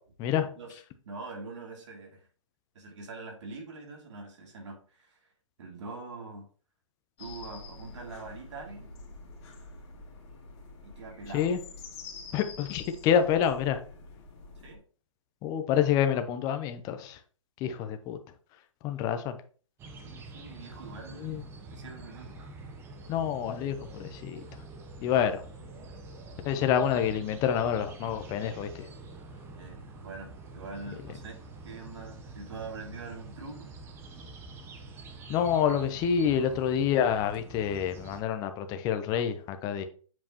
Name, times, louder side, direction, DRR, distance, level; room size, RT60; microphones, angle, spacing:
voice 1, 1.0-2.3 2.7-5.3 5.6-6.5 7.2-8.9 10.8-11.5 14.6-14.8 20.0-21.4 21.7-22.4 29.6-33.7, right 3 dB, 60° right, 2.6 m, -44 dB
sound 1, 7.2-14.8, left 3 dB, 55° left, 2.2 m, -47 dB
voice 2, 12.3-13.8 15.4-17.2 17.6-18.2 18.8-19.4 21.2-21.4 23.1-24.5 25.0-25.4 26.4-28.9 35.3-39.8, left 8 dB, 20° left, 0.7 m, -27 dB
sound 2, 19.8-38.2, right 2 dB, 15° right, 0.8 m, -46 dB
7.5 x 4.6 x 2.9 m
hypercardioid pair, 145°, 17 cm